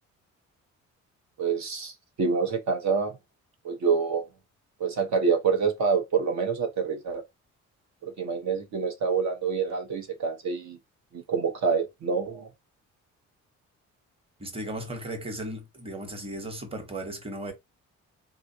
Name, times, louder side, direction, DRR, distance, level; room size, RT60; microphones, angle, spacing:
voice 1, 1.4-3.1 3.6-4.3 4.8-7.2 8.0-10.8 11.1-12.5, right 5 dB, 65° right, 0.9 m, -27 dB
voice 2, 14.4-17.5, right 1 dB, 20° right, 1.0 m, -36 dB
3.6 x 2.4 x 2.7 m
cardioid pair, 90°, 30 cm